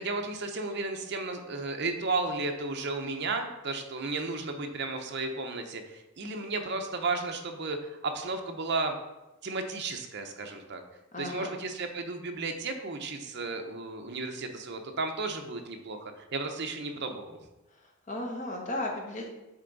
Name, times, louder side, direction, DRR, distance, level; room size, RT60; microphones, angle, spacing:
voice 1, 0.0-8.9 9.4-10.8 11.2-17.4, right 3 dB, 50° right, 4 dB, 0.7 m, -34 dB
voice 2, 11.1-11.6 17.7-19.3, left 1 dB, 35° left, 0 dB, 1.1 m, -35 dB
8.2 x 3.3 x 4.0 m, 1.0 s
head